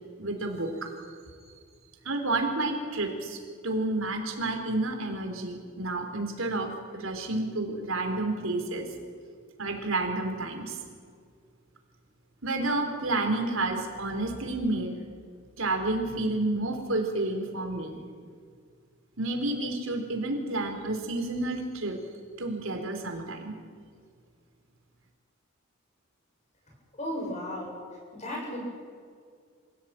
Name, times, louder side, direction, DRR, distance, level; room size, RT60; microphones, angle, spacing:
voice 1, 0.2-0.9 2.0-8.9 9.6-10.8 12.4-14.9 15.6-18.0 19.2-22.0 22.4-23.5, right 2 dB, 85° right, 4 dB, 4.0 m, -30 dB
voice 2, 27.0-27.8 28.1-28.6, left 1 dB, 35° left, -1 dB, 7.5 m, -34 dB
26.0 x 16.5 x 9.1 m, 2.1 s
head